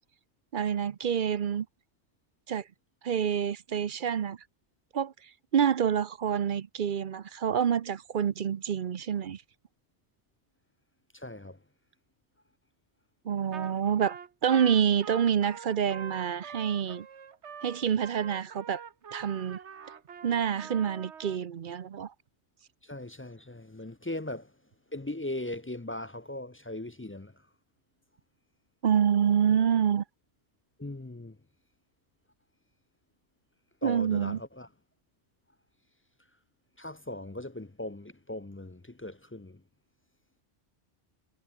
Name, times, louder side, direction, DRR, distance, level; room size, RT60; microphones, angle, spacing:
voice 1, 0.5-1.7 2.5-2.6 3.0-4.4 4.9-5.1 5.5-9.4 13.3-17.1 17.6-18.8 19.1-19.6 20.2-22.1 28.8-30.0 33.8-34.4, right 8 dB, 50° right, 0.8 m, -27 dB
voice 2, 11.1-11.6 22.8-24.5 24.9-27.4 30.8-31.4 33.8-34.7 36.8-39.6, left 1 dB, 15° left, 0.4 m, -39 dB
Trumpet, 13.5-13.7 14.0-21.4, right 7 dB, 80° right, 1.5 m, -45 dB
omnidirectional pair, 1.2 m